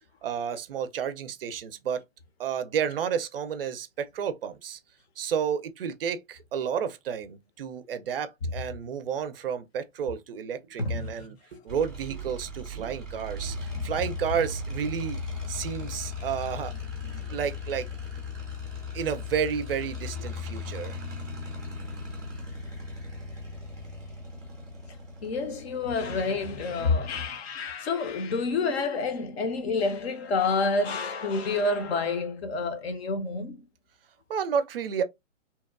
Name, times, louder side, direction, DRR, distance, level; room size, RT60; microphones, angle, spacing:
voice 1, 0.2-2.0 2.4-4.8 5.2-15.2 15.5-16.7 17.2-17.9 18.9-21.0 34.3-35.0, right 7 dB, 50° right, 0.4 m, -31 dB
voice 2, 10.8-11.1 13.7-13.9 17.0-17.2 25.2-33.6, left 3 dB, 50° left, 0.7 m, -28 dB
sound 1, 11.7-27.3, left 3 dB, ahead, 0.5 m, -37 dB
2.9 x 2.1 x 2.3 m
hypercardioid pair, 140°, 39 cm